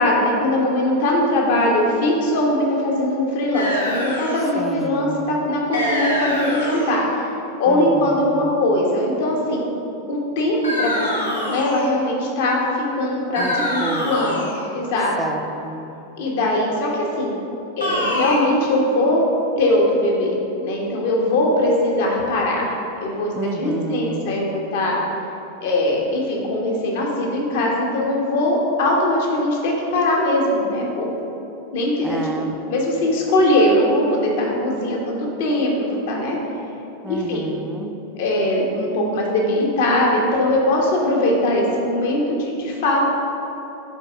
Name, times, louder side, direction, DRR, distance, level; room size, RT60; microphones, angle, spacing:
voice 1, 0.0-7.3 7.6-9.7 10.1-14.4 14.7-15.1 16.2-17.3 17.8-19.2 19.6-22.7 23.0-25.0 25.6-31.4 31.7-36.4 37.1-37.5 38.1-43.1, left 1 dB, 50° left, -1 dB, 1.1 m, -21 dB
sound 1, 3.5-4.5 5.7-7.0 10.6-12.0 13.3-14.6 17.8-18.4, left 1 dB, 85° left, 1.2 m, -25 dB
voice 2, 4.5-5.3 7.7-8.5 13.4-14.5 15.2-15.9 23.3-24.3 32.0-32.6 37.0-38.0, right 2 dB, 10° right, 4 dB, 0.5 m, -30 dB
5.2 x 4.2 x 4.8 m, 3.0 s
figure-of-eight pair, 90°, 0 cm